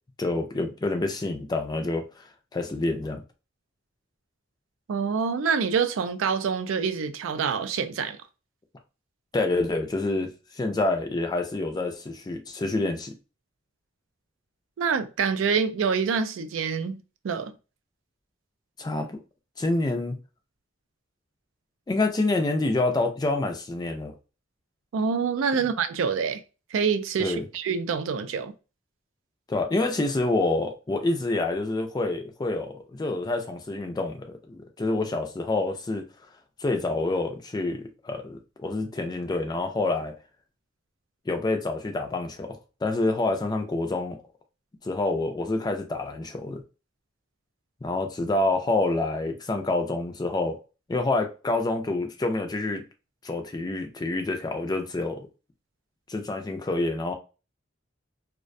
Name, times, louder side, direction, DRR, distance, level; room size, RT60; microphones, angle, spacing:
voice 1, 0.2-2.2 2.5-3.2 9.3-10.3 10.6-13.1 18.8-19.2 19.6-20.2 21.9-24.1 27.2-27.5 29.5-36.0 36.6-40.1 41.3-44.2 44.8-46.6 47.8-50.6 50.9-52.8 53.2-55.3 56.1-57.1, left 2 dB, 20° left, 0.4 m, -27 dB
voice 2, 4.9-8.2 14.8-17.5 24.9-26.4 26.7-28.5, right 6 dB, 75° right, 0.3 m, -26 dB
2.4 x 2.1 x 2.5 m
head